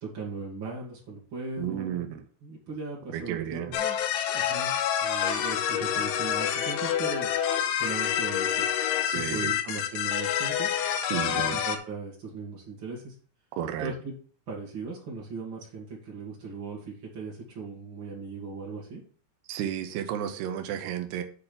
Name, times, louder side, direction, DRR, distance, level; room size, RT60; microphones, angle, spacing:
voice 1, 0.0-2.0 2.4-4.0 4.3-4.7 5.0-7.3 7.8-8.7 9.1-10.7 11.5-13.1 13.8-14.1 14.5-19.0, right 4 dB, 50° right, -4 dB, 1.4 m, -38 dB
voice 2, 1.6-2.2 3.1-3.8 9.1-9.6 11.1-11.6 13.5-13.9 19.5-21.2, right 10 dB, 80° right, 6 dB, 2.4 m, -32 dB
sound 1, 3.7-11.8, left 9 dB, 90° left, 3.8 m, -27 dB
8.4 x 4.2 x 6.9 m, 0.43 s
omnidirectional pair, 5.9 m